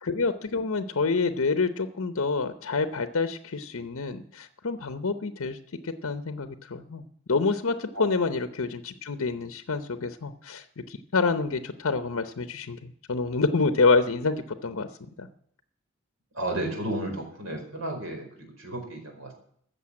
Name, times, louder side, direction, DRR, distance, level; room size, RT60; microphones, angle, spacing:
voice 1, 0.0-5.6 5.8-14.9 15.2-15.3, left 4 dB, 80° left, 9 dB, 0.8 m, -27 dB
voice 2, 16.3-19.3, right 1 dB, 75° right, 2 dB, 4.5 m, -33 dB
14.5 x 6.9 x 8.6 m, 0.65 s
head